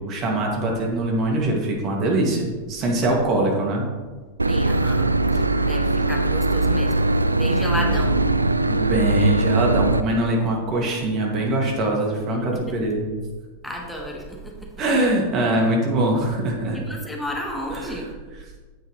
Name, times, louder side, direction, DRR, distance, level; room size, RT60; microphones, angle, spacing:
voice 1, 0.0-3.9 7.7-7.9 8.7-13.1 14.8-16.8 17.7-18.0, right 1 dB, 35° right, -1 dB, 2.2 m, -23 dB
Boat Water vehicle / Engine, 4.4-10.0, right 2 dB, 80° right, 0.3 m, -21 dB
voice 2, 4.5-8.2 12.4-12.5 13.6-14.7 16.7-18.1, equal, 5° left, -1 dB, 1.7 m, -32 dB
9.5 x 8.1 x 3.2 m, 1.4 s
figure-of-eight pair, 90°, 0 cm